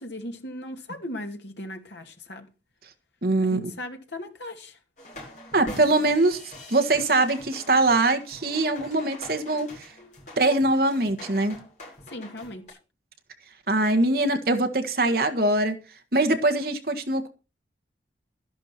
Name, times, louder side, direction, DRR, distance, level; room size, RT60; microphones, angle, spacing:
voice 1, 0.0-2.5 3.4-4.8 12.1-12.8 16.6-16.7, left 1 dB, 65° left, 2.4 m, -38 dB
voice 2, 3.2-3.7 5.5-6.4 6.7-9.9 10.4-11.6 13.7-15.7 16.1-17.3, right 2 dB, 55° right, 1.8 m, -22 dB
sound 1, 5.0-12.7, left 1 dB, 40° left, 7.7 m, -44 dB
13.0 x 11.0 x 4.5 m
head